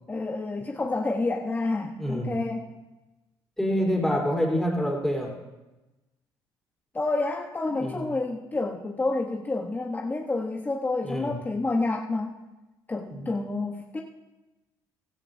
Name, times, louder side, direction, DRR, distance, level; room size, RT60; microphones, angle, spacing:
voice 1, 0.1-2.7 6.9-12.4 12.9-14.0, left 3 dB, 20° left, 1 dB, 1.0 m, -29 dB
voice 2, 2.0-2.4 3.6-5.4 7.7-8.1 11.0-11.4 13.1-13.3, equal, 5° left, -2 dB, 3.7 m, -27 dB
16.0 x 14.0 x 2.7 m, 1.1 s
supercardioid pair, 80°, 9 cm